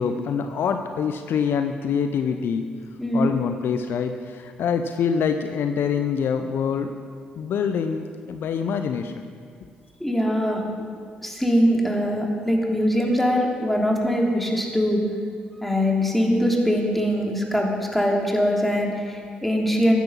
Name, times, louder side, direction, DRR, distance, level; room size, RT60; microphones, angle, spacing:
voice 1, 0.0-2.7 3.1-7.0 7.4-9.2, left 6 dB, 60° left, 7 dB, 0.7 m, -25 dB
voice 2, 3.0-3.3 10.0-10.6 11.2-15.0 15.6-20.0, equal, 5° left, 0 dB, 3.2 m, -22 dB
14.5 x 10.5 x 5.6 m, 2.1 s
hypercardioid pair, 45°, 4 cm